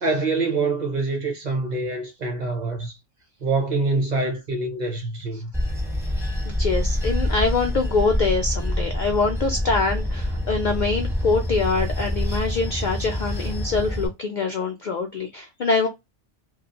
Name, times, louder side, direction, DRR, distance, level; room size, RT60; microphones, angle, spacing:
voice 1, 0.0-3.0 3.4-5.5, right 3 dB, 45° right, 0.7 m, -25 dB
Bell / Train, 5.5-14.1, left 1 dB, 5° right, 0.4 m, -26 dB
voice 2, 6.5-15.9, left 4 dB, 60° left, 0.5 m, -24 dB
2.4 x 2.3 x 2.8 m
omnidirectional pair, 1.2 m